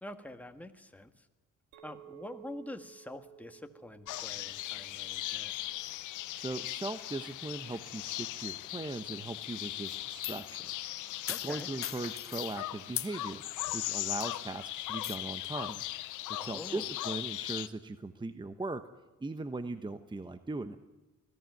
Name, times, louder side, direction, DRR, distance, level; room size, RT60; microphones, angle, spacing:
voice 1, 0.0-1.3 1.8-5.5 11.3-11.7 16.3-16.9, left 1 dB, 5° left, 6 dB, 1.5 m, -46 dB
Chink clink, 1.7-6.2, right 14 dB, 85° right, 2.0 m, -55 dB
sound 1, 4.1-17.7, left 15 dB, 80° left, 0.8 m, -39 dB
voice 2, 6.3-10.9 11.4-15.8 16.3-18.8 19.2-20.8, right 2 dB, 15° right, 10 dB, 0.9 m, -39 dB
sound 2, 9.9-10.6 11.3-12.6 12.9-13.1 13.7-13.8 14.2-14.5 15.0-15.2, left 10 dB, 50° left, 0.7 m, -39 dB
20.0 x 14.0 x 9.2 m, 1.0 s
cardioid pair, 90°, 30 cm